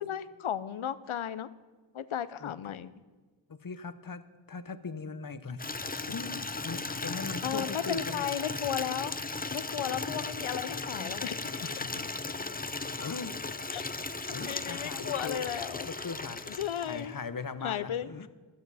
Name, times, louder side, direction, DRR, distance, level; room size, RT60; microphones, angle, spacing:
voice 1, 0.0-1.5 1.9-2.9 6.9-7.0 7.4-9.2 9.5-11.6 13.7-13.9 14.2-15.9 16.5-17.2 17.6-18.1, left 9 dB, 80° left, 15 dB, 0.7 m, -35 dB
voice 2, 3.5-4.2 4.5-5.7 6.1-8.3 11.6-12.1 12.8-13.7 14.3-15.5 15.9-18.3, left 5 dB, 45° left, 13 dB, 0.9 m, -40 dB
Water tap faucet / Liquid, 5.6-17.2, left 3 dB, 20° left, 0.7 m, -36 dB
16.5 x 12.5 x 4.1 m, 1.4 s
cardioid pair, 50°, 48 cm